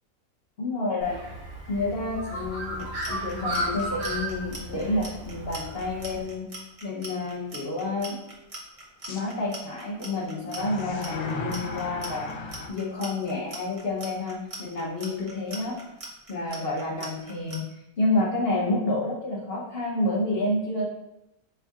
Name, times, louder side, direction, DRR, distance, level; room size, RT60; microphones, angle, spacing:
voice 1, 0.6-1.2 1.7-6.5 6.8-8.2 9.1-12.3 12.7-15.8 16.3-17.6 18.0-20.8, left 2 dB, 50° left, -3 dB, 0.9 m, -29 dB
Bird, 1.0-6.2, right 1 dB, 50° right, 1.3 m, -34 dB
Clock, 2.7-17.6, right 2 dB, 30° right, 0.7 m, -41 dB
sound 1, 3.8-3.9 4.5-4.6 9.0-9.2 10.4-12.7, left 3 dB, 80° left, 1.2 m, -36 dB
5.6 x 3.5 x 2.3 m, 0.87 s
omnidirectional pair, 1.6 m